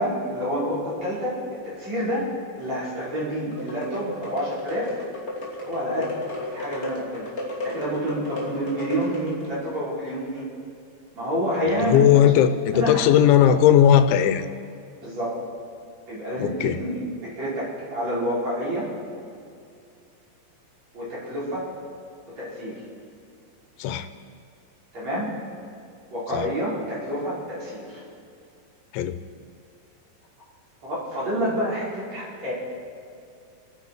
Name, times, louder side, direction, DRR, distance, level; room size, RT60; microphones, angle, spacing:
voice 1, 0.0-2.3 2.5-5.0 5.6-6.1 6.5-7.3 7.6-10.5 11.1-12.0 12.7-12.9 15.0-15.4 16.1-16.5 16.8-16.9 17.2-18.9 20.9-21.7 22.3-22.8 24.9-25.3 26.1-28.0 30.8-32.5, equal, 35° right, -8 dB, 6.1 m, -28 dB
sound 1, 3.5-9.6, left 1 dB, 20° left, 1.9 m, -34 dB
voice 2, 11.7-14.5 16.4-16.8 23.8-24.1 26.3-26.5 28.9-29.2, left 10 dB, 85° left, 10 dB, 3.1 m, -18 dB
28.0 x 9.8 x 4.7 m, 2.4 s
omnidirectional pair, 5.2 m